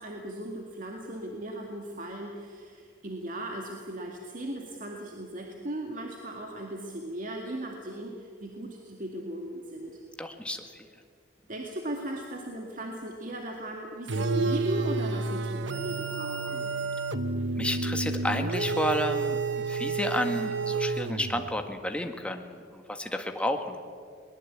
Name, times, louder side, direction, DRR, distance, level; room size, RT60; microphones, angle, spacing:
voice 1, 0.0-10.0 11.5-16.7, right 1 dB, 45° right, 1 dB, 2.2 m, -37 dB
voice 2, 10.2-10.9 17.6-19.4 19.7-23.8, left 1 dB, 5° left, 5 dB, 1.7 m, -31 dB
sound 1, 14.1-21.5, right 3 dB, 70° right, 1.1 m, -30 dB
22.0 x 20.5 x 8.6 m, 2.1 s
head